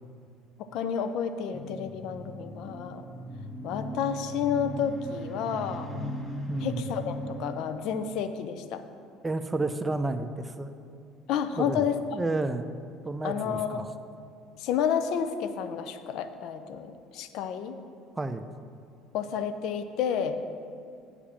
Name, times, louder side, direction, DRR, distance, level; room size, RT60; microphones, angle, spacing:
voice 1, 0.7-3.1 3.6-5.9 6.6-8.8 11.3-12.0 13.2-13.8 14.6-17.8 19.1-20.4, left 7 dB, 65° left, 9 dB, 0.6 m, -30 dB
sound 1, 1.5-7.7, equal, 20° left, 1.4 m, -38 dB
voice 2, 6.5-6.8 9.2-10.8 11.6-11.8 12.1-12.7 13.0-13.9 18.2-18.5, right 2 dB, 20° right, 9 dB, 0.6 m, -31 dB
8.4 x 5.0 x 7.2 m, 2.4 s
hypercardioid pair, 70°, 0 cm